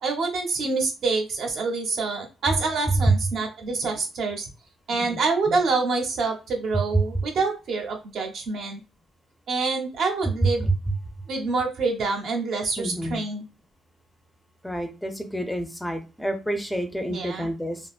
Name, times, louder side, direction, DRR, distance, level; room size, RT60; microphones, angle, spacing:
voice 1, 0.0-4.5 4.9-8.8 9.5-10.7 11.3-13.4 17.1-17.5, right 4 dB, 70° right, 2 dB, 0.9 m, -26 dB
voice 2, 12.8-13.2 14.6-17.8, right 2 dB, 5° left, 6 dB, 0.5 m, -27 dB
3.6 x 2.0 x 2.4 m, 0.30 s
cardioid pair, 90°, 0 cm